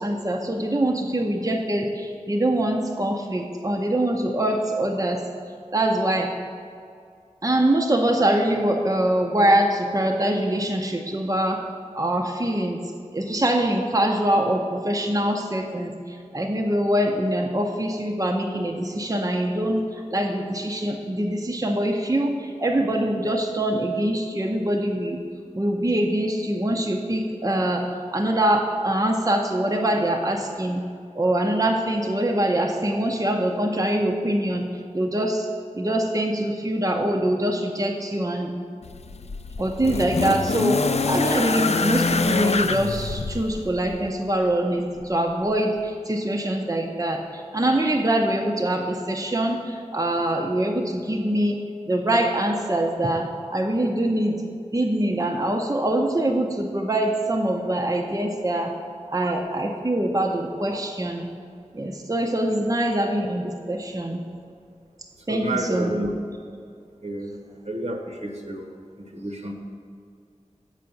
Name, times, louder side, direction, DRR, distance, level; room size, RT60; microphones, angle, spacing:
voice 1, 0.0-5.3 5.7-6.3 7.4-11.7 11.9-25.2 25.5-30.8 31.1-35.5 35.8-38.6 39.6-51.6 51.9-54.4 54.7-58.7 59.1-61.3 61.7-64.3 65.3-65.9, right 1 dB, 25° right, 1 dB, 0.7 m, -24 dB
sound 1, 38.8-44.0 45.1-45.2, left 4 dB, 55° left, 0.4 m, -25 dB
voice 2, 65.3-66.1 67.0-67.4 67.6-69.5, right 1 dB, 60° right, 2 dB, 1.0 m, -30 dB
7.7 x 4.8 x 6.9 m, 2.3 s
wide cardioid pair, 40°, 13 cm